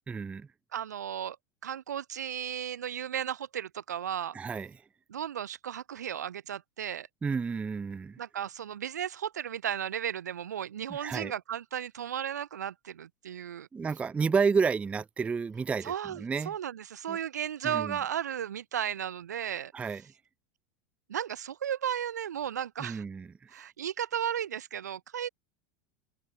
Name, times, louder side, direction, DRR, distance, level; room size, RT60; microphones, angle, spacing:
voice 1, 0.1-0.5 4.3-4.7 7.2-8.2 10.9-11.3 13.7-16.5 17.1-17.2 17.6-18.0 19.7-20.0 22.8-23.3, right 5 dB, 15° right, 0.3 m, -30 dB
voice 2, 0.7-1.4 1.6-4.4 5.1-7.1 8.2-13.7 15.8-19.7 21.1-23.0 23.5-25.3, right 9 dB, 75° right, 0.9 m, -35 dB
open air
figure-of-eight pair, 80°, 9 cm